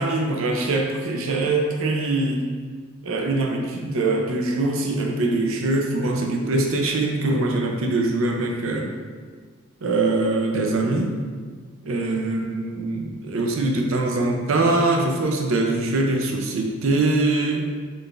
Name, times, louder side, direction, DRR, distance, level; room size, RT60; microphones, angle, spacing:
voice 1, 0.0-2.5 3.0-8.9 9.8-11.1 11.8-17.7, right 2 dB, 65° right, 1 dB, 0.5 m, -23 dB
3.8 x 2.6 x 3.3 m, 1.6 s
head